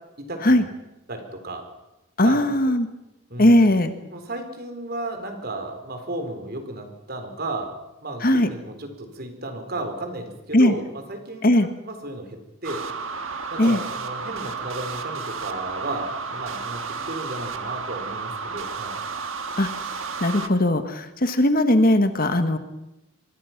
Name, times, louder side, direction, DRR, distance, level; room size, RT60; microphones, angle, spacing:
voice 1, 0.2-0.7 1.1-1.6 2.2-2.5 3.3-3.6 4.1-11.6 11.9-12.9 13.5-19.0, right 2 dB, 45° right, 6 dB, 4.1 m, -34 dB
voice 2, 2.2-2.9 3.4-3.9 8.2-8.5 10.5-10.7 11.4-11.7 13.6-13.8 19.6-22.6, left 1 dB, 40° left, 9 dB, 1.5 m, -19 dB
sound 1, 12.6-20.5, right 5 dB, 65° right, 1.6 m, -32 dB
25.5 x 22.5 x 5.9 m, 0.92 s
head